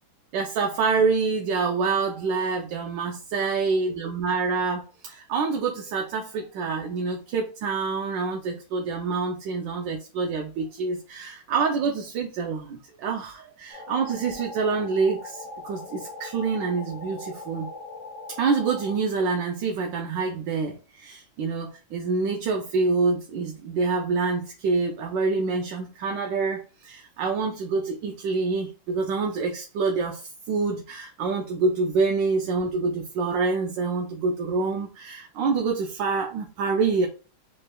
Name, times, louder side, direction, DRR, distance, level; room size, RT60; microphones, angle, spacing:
voice 1, 0.3-17.7 18.4-37.1, right 4 dB, 70° right, 1.2 m, -26 dB
sound 1, 13.7-19.0, left 2 dB, 45° left, 1.3 m, -40 dB
5.4 x 3.2 x 2.2 m
omnidirectional pair, 2.3 m